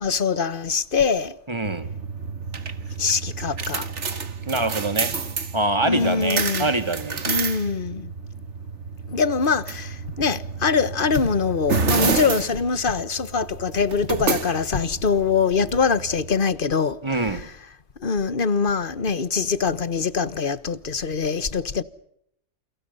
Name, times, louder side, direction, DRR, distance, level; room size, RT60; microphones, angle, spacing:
voice 1, 0.0-1.3 3.0-3.8 5.8-6.7 7.3-8.1 9.1-17.0 18.0-21.8, left 5 dB, 45° left, 1.4 m, -23 dB
voice 2, 1.5-1.9 4.5-5.2 5.5-7.2 17.0-17.5, right 2 dB, 25° right, 2.1 m, -25 dB
sound 1, 1.7-16.4, right 4 dB, 75° right, 2.1 m, -29 dB
30.0 x 29.0 x 5.6 m
omnidirectional pair, 1.2 m